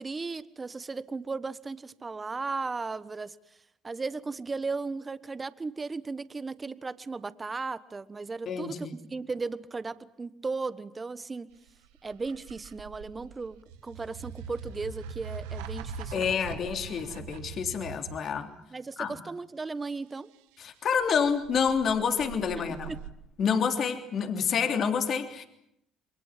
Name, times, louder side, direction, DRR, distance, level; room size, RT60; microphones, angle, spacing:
voice 1, 0.0-3.3 3.8-11.6 12.0-16.4 18.7-20.3 22.8-23.0, right 4 dB, 25° right, 14 dB, 1.3 m, -36 dB
voice 2, 8.5-9.0 16.1-18.5 19.0-19.2 20.6-23.0 23.4-25.5, left 6 dB, 55° left, 6 dB, 3.3 m, -28 dB
sound 1, 11.7-18.4 21.0-23.1, right 6 dB, 90° right, 1.6 m, -42 dB
28.5 x 23.0 x 7.5 m, 0.75 s
supercardioid pair, 75°, 0 cm